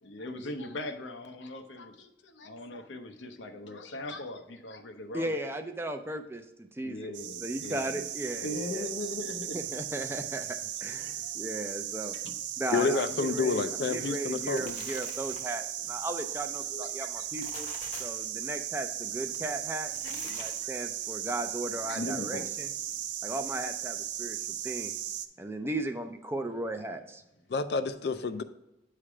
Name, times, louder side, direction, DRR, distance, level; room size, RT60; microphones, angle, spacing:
voice 1, 0.0-5.4 6.8-8.1 8.4-9.6 11.0-11.4 12.0-12.4 16.7-17.3 20.0-20.7 21.8-22.5 22.9-23.0, left 1 dB, 90° left, 6 dB, 0.7 m, -40 dB
voice 2, 5.1-7.1 7.4-8.9 9.5-12.2 12.6-17.7 18.0-19.9 20.2-22.7 23.2-24.4 24.6-24.9 25.4-27.2, right 1 dB, 15° right, 7 dB, 0.4 m, -36 dB
sound 1, 7.1-25.3, right 11 dB, 75° right, 0.4 m, -37 dB
voice 3, 12.7-14.8 27.5-28.4, left 4 dB, 60° left, 10 dB, 0.4 m, -29 dB
sound 2, 14.2-15.7 17.2-18.3 19.8-20.8, left 5 dB, 40° left, 0.8 m, -46 dB
8.5 x 3.3 x 4.8 m, 0.91 s
head